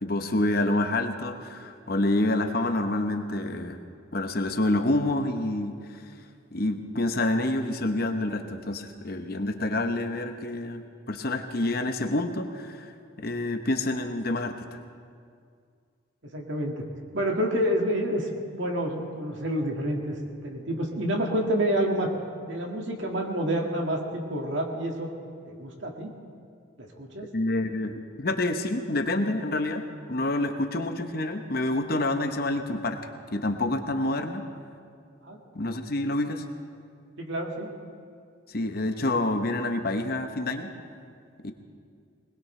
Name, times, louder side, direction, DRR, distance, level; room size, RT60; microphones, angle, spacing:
voice 1, 0.0-3.8 4.1-5.7 6.5-10.8 11.1-12.9 13.2-14.8 27.3-33.0 33.3-34.4 35.5-36.4 38.5-40.7 41.4-41.5, left 2 dB, 50° left, 6 dB, 0.9 m, -27 dB
voice 2, 16.3-16.8 17.1-22.1 22.5-25.1 25.5-26.1 26.8-27.3 35.2-35.4 37.2-37.7, equal, 70° right, 1 dB, 2.0 m, -28 dB
21.0 x 20.0 x 3.3 m, 2.2 s
head